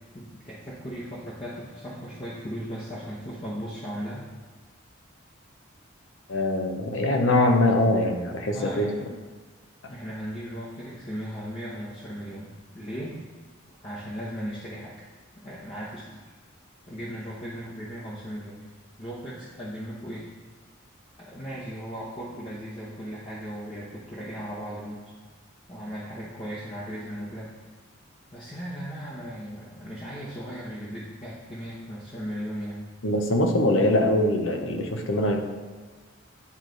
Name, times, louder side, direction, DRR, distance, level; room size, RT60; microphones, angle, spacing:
voice 1, 0.1-4.2 8.5-9.1 9.9-13.1 13.8-14.9 15.4-16.1 16.9-18.6 19.0-20.3 21.2-25.0 25.7-27.5 28.3-32.8 33.7-33.9, equal, 25° left, -8 dB, 0.9 m, -37 dB
voice 2, 6.3-8.9 33.0-35.4, left 1 dB, 75° left, 4 dB, 0.8 m, -23 dB
9.6 x 3.2 x 3.9 m, 1.4 s
head